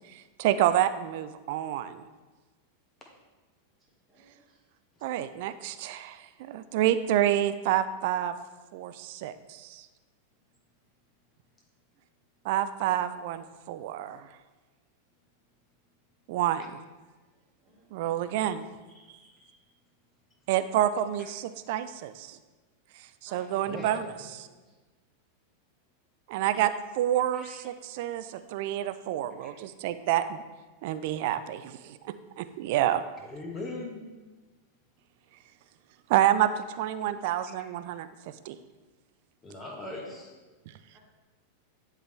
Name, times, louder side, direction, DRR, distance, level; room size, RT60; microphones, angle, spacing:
voice 1, 0.4-2.1 5.0-8.3 8.7-9.8 12.4-14.3 16.3-16.7 17.9-18.6 20.5-22.4 23.2-24.5 26.3-30.4 30.8-33.0 36.1-38.1 38.5-38.6, right 12 dB, 50° right, 12 dB, 0.4 m, -28 dB
voice 2, 4.1-4.6 17.0-17.2 17.6-17.9 23.3-24.7 39.9-40.2 40.9-41.0, right 1 dB, 20° right, -4 dB, 2.0 m, -56 dB
voice 3, 18.9-19.6 21.6-21.7 23.7-24.1 27.3-27.6 29.4-29.5 33.2-34.1 39.4-40.3, left 2 dB, 20° left, 0 dB, 1.4 m, -41 dB
10.0 x 3.7 x 3.2 m, 1.3 s
figure-of-eight pair, 90°, 0 cm